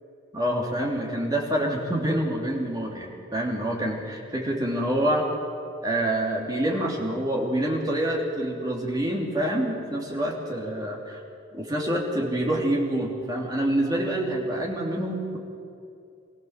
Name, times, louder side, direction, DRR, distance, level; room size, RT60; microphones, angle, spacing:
voice 1, 0.3-5.3 5.8-11.2 11.5-15.4, right 1 dB, 20° right, -2 dB, 3.0 m, -27 dB
24.0 x 16.0 x 7.5 m, 2.5 s
head